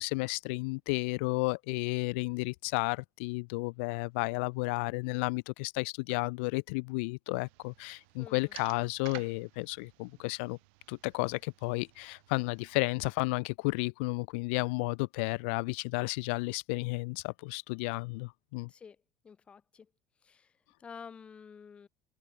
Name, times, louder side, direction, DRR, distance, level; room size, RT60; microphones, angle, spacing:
voice 1, 0.0-10.6 10.9-18.7, left 28 dB, 90° left, 1.5 m, -32 dB
sound 1, 7.4-13.1, right 29 dB, 85° right, 4.9 m, -54 dB
voice 2, 8.2-8.5 18.7-19.0 19.2-19.9 20.2-20.5 20.8-21.9, left 6 dB, 20° left, 5.3 m, -50 dB
open air
cardioid pair, 180°, 6 cm